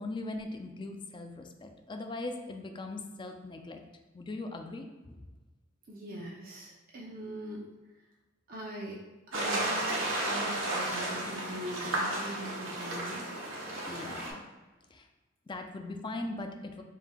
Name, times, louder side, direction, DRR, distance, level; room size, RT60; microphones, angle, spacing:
voice 1, 0.0-3.8 4.1-5.3 13.9-14.4 14.9-15.1 15.5-16.8, left 2 dB, 25° left, 5 dB, 0.4 m, -40 dB
voice 2, 5.9-7.7 7.9-8.1 8.5-9.0 9.3-13.3, right 1 dB, 45° right, -4 dB, 0.7 m, -41 dB
sound 1, 9.3-14.3, right 1 dB, 70° right, 1.1 m, -33 dB
5.3 x 3.3 x 2.4 m, 1.2 s
head